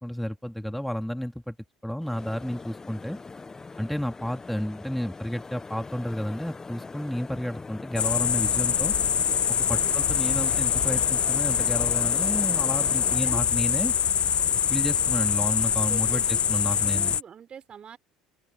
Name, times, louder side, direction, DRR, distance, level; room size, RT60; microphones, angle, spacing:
voice 1, 0.0-1.6 1.8-3.2 3.8-8.9 9.5-13.9 14.7-17.1, equal, ahead, 2.5 m, -31 dB
sound 1, 2.0-13.2, left 4 dB, 20° left, 0.9 m, -41 dB
sound 2, 8.0-17.2, left 8 dB, 40° left, 0.4 m, -24 dB
voice 2, 9.7-10.0 12.9-13.4 15.8-16.2 16.8-18.0, right 8 dB, 40° right, 5.0 m, -43 dB
open air
hypercardioid pair, 65°, 3 cm